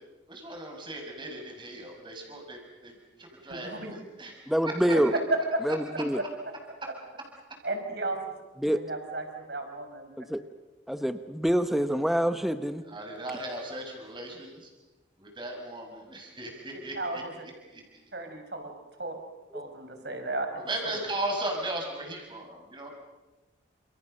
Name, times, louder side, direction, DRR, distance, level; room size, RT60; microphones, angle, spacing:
voice 1, 0.3-2.9 3.2-4.3 12.9-14.7 15.2-17.2 17.7-18.0 20.5-22.9, right 1 dB, 25° right, 2 dB, 6.1 m, -37 dB
voice 2, 3.5-3.9 5.3-5.6 7.6-8.2 8.7-10.1 17.0-17.3 18.1-18.7 19.0-19.1 19.5-20.9, right 2 dB, 55° right, 5 dB, 5.3 m, -33 dB
voice 3, 4.5-5.1 5.6-6.2 8.6-8.8 10.2-10.4 10.9-12.8 19.5-19.6, equal, ahead, 9 dB, 1.0 m, -26 dB
30.0 x 28.0 x 6.7 m, 1.1 s
head